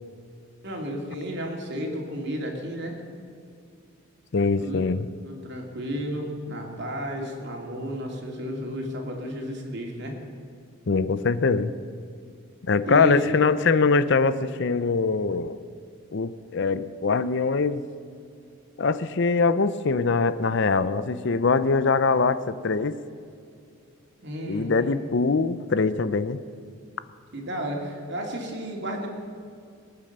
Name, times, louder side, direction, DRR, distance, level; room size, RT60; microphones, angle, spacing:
voice 1, 0.6-3.0 4.6-4.8 5.2-10.2 12.8-13.3 24.2-25.0 27.3-29.1, equal, 50° right, 1 dB, 2.7 m, -32 dB
voice 2, 4.3-5.1 10.9-11.7 12.6-15.6 16.1-17.8 18.8-23.0 24.5-26.4, left 4 dB, 55° left, 14 dB, 0.5 m, -23 dB
22.5 x 9.4 x 6.7 m, 2.4 s
head